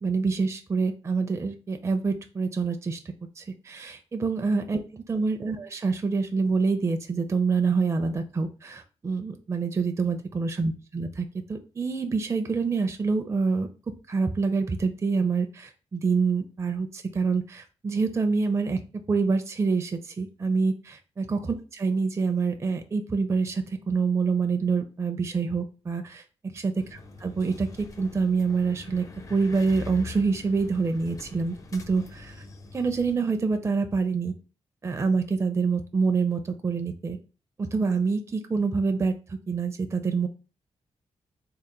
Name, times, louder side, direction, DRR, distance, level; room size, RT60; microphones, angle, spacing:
voice 1, 0.0-3.0 3.4-13.7 14.1-18.8 19.1-26.2 26.5-27.7 28.0-29.0 29.3-32.4 32.7-34.3 34.8-37.2 37.7-40.3, right 4 dB, 25° right, 6 dB, 0.4 m, -26 dB
sound 1, 26.8-33.2, left 3 dB, 30° left, 0.5 m, -44 dB
3.7 x 2.1 x 4.3 m, 0.33 s
cardioid pair, 105°, 11 cm